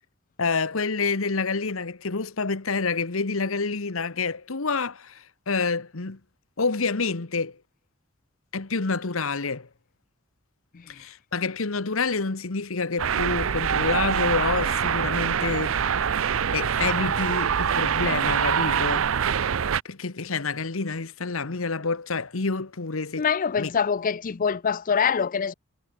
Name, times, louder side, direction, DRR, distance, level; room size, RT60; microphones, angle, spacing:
voice 1, 0.4-6.2 6.6-7.6 8.5-9.7 10.9-15.8 16.5-19.1 19.8-23.3 23.6-23.7, left 4 dB, 75° left, 1.3 m, -28 dB
sound 1, 13.0-19.8, right 7 dB, 70° right, 0.6 m, -24 dB
voice 2, 23.2-25.5, left 6 dB, 40° left, 0.5 m, -24 dB
head